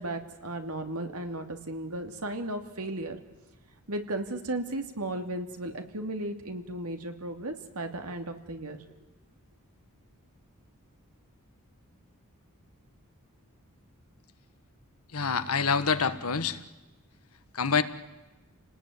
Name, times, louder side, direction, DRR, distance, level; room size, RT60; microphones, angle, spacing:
voice 1, 0.0-3.2 3.9-8.8, right 1 dB, 75° right, 6 dB, 2.8 m, -35 dB
voice 2, 15.1-16.6 17.5-17.8, left 5 dB, 75° left, 11 dB, 1.5 m, -26 dB
29.5 x 19.5 x 9.4 m, 1.2 s
head